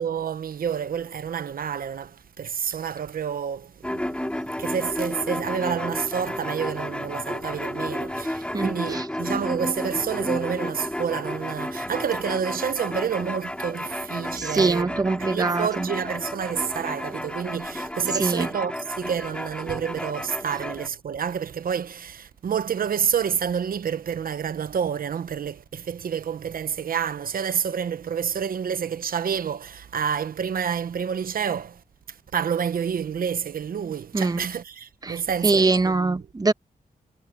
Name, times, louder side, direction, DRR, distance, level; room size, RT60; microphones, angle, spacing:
voice 1, 0.0-31.8 32.1-36.3, right 7 dB, 70° right, 0.8 m, -29 dB
sound 1, 3.8-20.9, left 1 dB, 5° left, 3.7 m, -32 dB
voice 2, 8.5-9.0 14.4-15.9 18.2-18.5 34.1-34.4 35.0-35.2 35.4-36.5, right 3 dB, 25° right, 1.0 m, -23 dB
wide cardioid pair, 95°, 15 cm